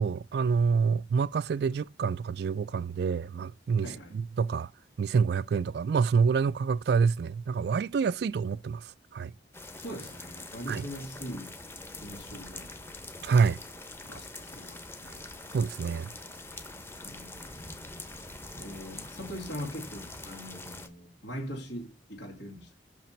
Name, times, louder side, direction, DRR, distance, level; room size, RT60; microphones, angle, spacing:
voice 1, 0.0-4.7 5.0-9.3 10.7-10.9 13.2-13.6 15.1-15.2 15.5-16.1, right 5 dB, 65° right, 0.3 m, -27 dB
voice 2, 3.8-4.2 9.8-11.6 12.0-12.7 14.0-15.2 17.0-17.8 18.5-22.7, equal, 85° left, 2.5 m, -41 dB
sound 1, 9.5-20.9, left 2 dB, 15° left, 0.9 m, -44 dB
6.0 x 5.8 x 4.4 m
head